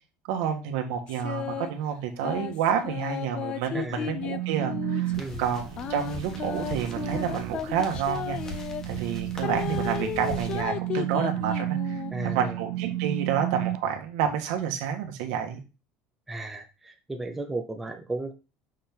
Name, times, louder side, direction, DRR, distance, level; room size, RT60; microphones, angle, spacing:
voice 1, 0.3-8.6 8.8-15.6, right 8 dB, 80° right, 4 dB, 1.6 m, -29 dB
sound 1, 1.1-1.7 2.2-5.1 5.8-8.8 9.4-12.1, left 9 dB, 35° left, 0.5 m, -34 dB
voice 2, 3.7-4.1 5.2-5.4 12.1-12.5 16.3-18.3, right 2 dB, 5° right, 4 dB, 0.7 m, -34 dB
sound 2, 4.1-13.8, right 15 dB, 55° right, 0.5 m, -32 dB
sound 3, 5.1-10.6, left 1 dB, 15° left, 1.5 m, -41 dB
6.4 x 3.7 x 6.0 m, 0.31 s
cardioid pair, 160°, 3 cm